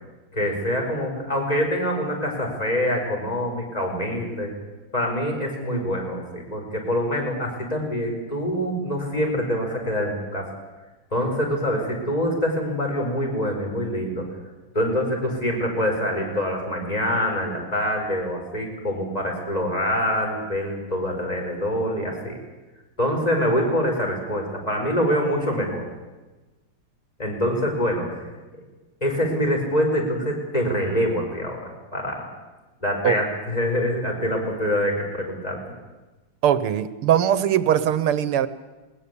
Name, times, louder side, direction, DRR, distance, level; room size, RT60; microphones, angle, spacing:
voice 1, 0.3-4.5 4.9-10.5 11.1-14.2 14.7-22.4 23.0-25.9 27.2-28.2 29.0-32.3 32.8-35.7, equal, 15° left, 1 dB, 5.2 m, -25 dB
voice 2, 36.4-38.5, right 10 dB, 85° right, 14 dB, 1.9 m, -20 dB
21.5 x 19.5 x 8.5 m, 1.2 s
omnidirectional pair, 2.4 m